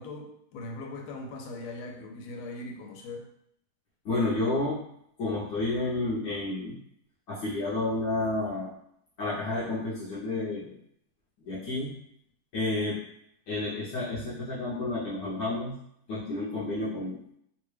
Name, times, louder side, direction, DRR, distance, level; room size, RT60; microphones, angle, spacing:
voice 1, 0.0-3.3, left 2 dB, 80° left, 1 dB, 1.5 m, -40 dB
voice 2, 4.0-4.8 5.2-6.8 7.3-8.7 9.2-10.7 11.4-11.9 12.5-13.0 13.5-15.7 16.1-17.2, left 2 dB, 65° left, -8 dB, 1.1 m, -30 dB
3.5 x 2.1 x 3.1 m, 0.72 s
omnidirectional pair, 2.4 m